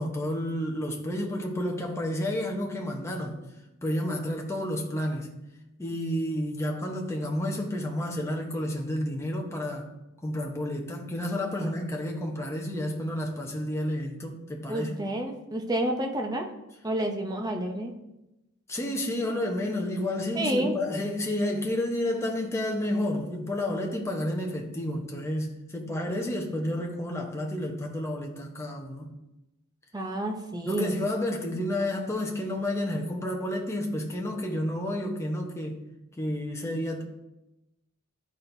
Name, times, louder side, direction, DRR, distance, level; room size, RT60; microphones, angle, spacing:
voice 1, 0.0-3.4 3.8-5.3 5.8-9.9 10.2-15.0 18.7-29.1 30.6-35.8 36.2-37.0, left 1 dB, 15° left, 0.9 m, -30 dB
voice 2, 14.7-16.5 16.8-17.9 20.3-20.8 29.9-31.0, right 1 dB, 20° right, 0.7 m, -29 dB
11.5 x 4.3 x 2.7 m
head